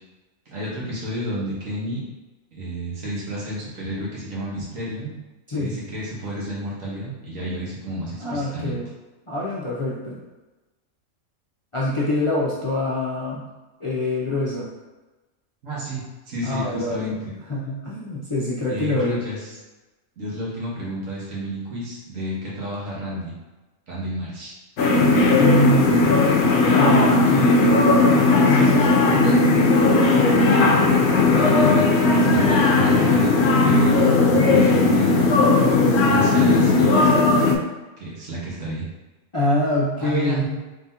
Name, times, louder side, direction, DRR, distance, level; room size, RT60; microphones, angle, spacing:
voice 1, 0.5-2.0 2.5-5.1 5.6-8.8 15.6-17.3 18.7-19.5 20.2-23.3 23.9-24.5 31.2-33.3 33.6-35.2 35.9-37.5 38.0-38.9 40.0-40.4, equal, 80° right, -6 dB, 1.7 m, -30 dB
voice 2, 5.5-5.8 8.2-8.9 9.3-10.2 11.7-13.5 13.8-14.7 16.4-17.2 17.5-19.2 25.3-26.1 26.5-27.7 28.4-29.5 39.3-40.6, left 1 dB, 40° left, -7 dB, 0.4 m, -25 dB
sound 1, 24.8-37.5, left 3 dB, 65° left, 0.8 m, -17 dB
3.9 x 3.7 x 2.8 m, 1.2 s
omnidirectional pair, 1.3 m